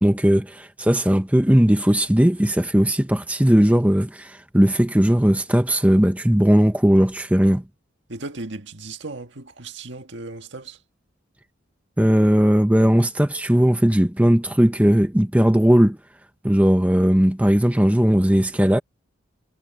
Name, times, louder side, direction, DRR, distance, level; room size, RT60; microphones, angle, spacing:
voice 1, 0.0-7.6 12.0-16.0 16.4-18.8, equal, 5° right, 0.8 m, -18 dB
voice 2, 8.1-10.8, right 2 dB, 65° right, 1.7 m, -36 dB
head